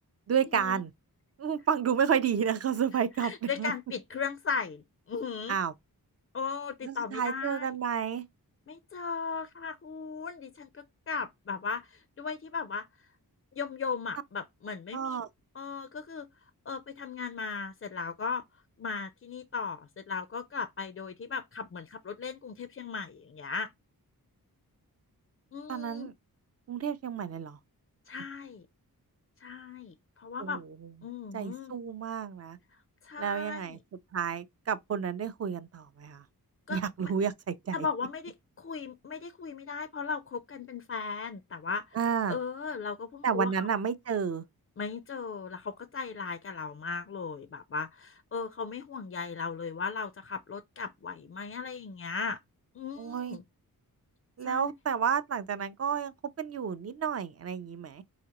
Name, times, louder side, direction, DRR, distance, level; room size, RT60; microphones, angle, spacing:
voice 1, 0.3-0.9 1.4-3.7 5.5-5.7 6.8-8.3 14.9-15.3 25.7-26.1 26.7-27.6 30.4-30.6 31.3-32.6 33.2-33.8 34.1-36.2 36.7-37.9 41.9-42.4 43.2-44.4 53.0-53.4 54.4-58.0, right 7 dB, 45° right, 0.4 m, -31 dB
voice 2, 3.2-5.6 6.3-7.7 8.7-12.9 13.6-15.2 15.5-16.3 16.7-18.4 18.8-23.7 25.5-26.1 28.1-28.7 29.4-30.6 31.0-31.7 33.0-33.8 36.7-37.1 37.7-41.9 42.3-43.7 44.8-52.4 52.8-53.4 54.4-54.7, left 5 dB, 40° left, 0.4 m, -37 dB
4.9 x 2.8 x 2.9 m
wide cardioid pair, 130°, 37 cm